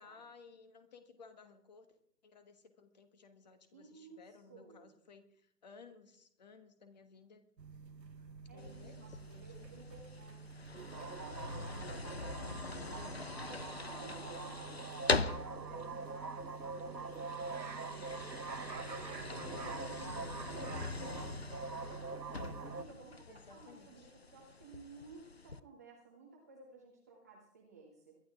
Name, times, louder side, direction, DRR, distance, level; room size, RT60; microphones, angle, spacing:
voice 1, 0.0-2.0 2.2-7.4 8.5-9.8 23.3-24.1, left 5 dB, 25° left, 10 dB, 1.3 m, -58 dB
voice 2, 3.7-4.9 8.5-10.4 10.8-18.5 18.8-22.3 22.6-28.1, right 3 dB, 10° right, -1 dB, 0.9 m, -57 dB
sound 1, 7.6-22.8, right 4 dB, 90° right, 1.3 m, -45 dB
sound 2, 8.6-25.6, left 3 dB, 40° left, 0.4 m, -42 dB
22.5 x 11.0 x 3.6 m, 0.67 s
figure-of-eight pair, 155°, 49 cm